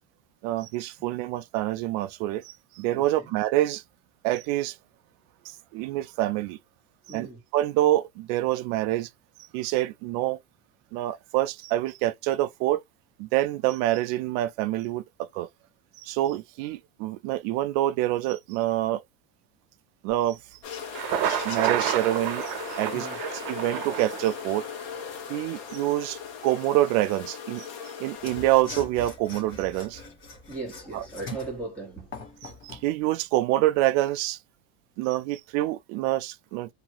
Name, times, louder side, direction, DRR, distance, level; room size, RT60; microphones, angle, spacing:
voice 1, 0.4-3.8 4.2-4.7 5.7-6.6 7.1-7.3 7.5-9.1 9.5-10.4 10.9-12.8 13.2-15.0 15.3-15.5 16.0-19.0 20.0-20.4 21.4-22.4 22.8-24.6 25.3-27.7 28.0-30.0 32.8-34.4 35.0-36.7, right 15 dB, 60° right, 0.5 m, -26 dB
voice 2, 2.9-3.3 7.1-7.4 22.9-23.2 30.5-32.3, right 3 dB, 5° left, 1.1 m, -38 dB
sound 1, 20.6-28.6, left 7 dB, 55° left, 1.0 m, -38 dB
Thunder, 20.8-24.8, right 11 dB, 90° right, 0.8 m, -30 dB
Mechanisms / Sawing, 28.2-32.9, left 3 dB, 25° left, 0.8 m, -42 dB
2.8 x 2.4 x 2.8 m
cardioid pair, 175°, 46 cm